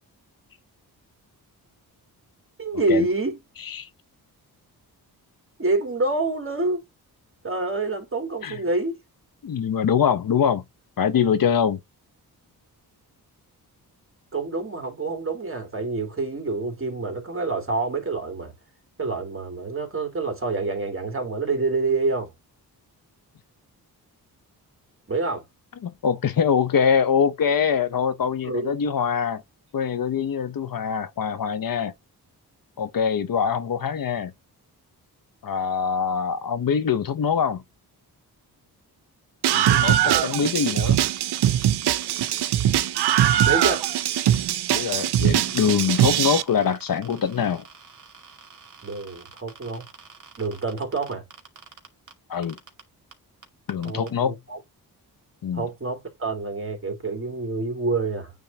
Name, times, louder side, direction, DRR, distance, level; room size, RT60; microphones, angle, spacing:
voice 1, 2.6-3.4 5.6-6.8 7.4-9.0 14.3-18.5 19.0-22.3 25.1-25.4 28.4-29.0 40.0-40.2 43.4-43.9 48.8-49.8 50.4-51.2 53.8-54.6 55.5-58.3, right 3 dB, 35° right, 3.1 m, -27 dB
voice 2, 9.4-10.6 11.0-11.8 25.8-29.4 29.7-31.9 32.8-34.3 35.4-37.6 39.5-41.0 44.7-47.6 52.3-52.6 53.7-54.4 55.4-55.7, left 7 dB, 60° left, 1.0 m, -24 dB
Screaming, 39.4-46.4, right 11 dB, 85° right, 0.7 m, -21 dB
sound 1, 40.7-44.0 44.3-52.1 52.4-52.8 53.1-53.2 53.4-54.1, right 5 dB, 50° right, 2.2 m, -46 dB
9.1 x 3.6 x 2.9 m
cardioid pair, 80°, 39 cm